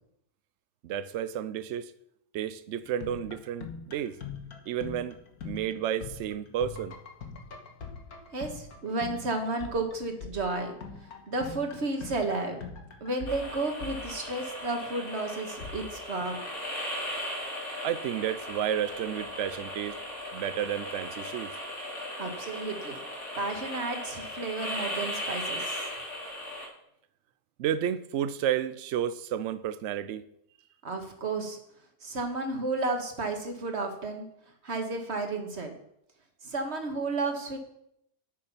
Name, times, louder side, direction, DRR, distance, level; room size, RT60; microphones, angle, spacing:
voice 1, 0.8-1.9 2.3-4.2 4.7-5.2 5.4-7.0 17.8-20.0 20.3-21.5 27.6-30.2, right 10 dB, 80° right, 13 dB, 0.6 m, -31 dB
sound 1, 2.8-14.7 15.6-16.2, left 5 dB, 65° left, 1.8 m, -43 dB
voice 2, 8.3-10.8 11.3-12.6 13.0-16.4 22.2-23.0 23.4-25.8 30.8-31.6 32.0-34.3 34.6-35.7 36.4-37.6, right 3 dB, 40° right, 4 dB, 1.9 m, -32 dB
sound 2, 13.3-26.7, left 1 dB, 45° left, 3.7 m, -37 dB
10.0 x 8.5 x 5.7 m, 0.76 s
omnidirectional pair, 1.8 m